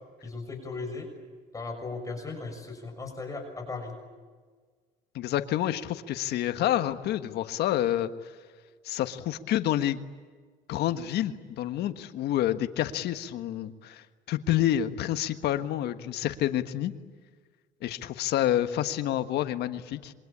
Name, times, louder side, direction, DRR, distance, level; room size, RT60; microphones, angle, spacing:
voice 1, 0.2-1.1 1.5-3.9, left 3 dB, 20° left, 2 dB, 6.5 m, -37 dB
voice 2, 5.1-8.3 8.8-10.0 10.7-16.9 17.8-20.1, left 12 dB, 75° left, 10 dB, 1.5 m, -28 dB
27.0 x 23.5 x 8.7 m, 1.5 s
cardioid pair, 110°, 17 cm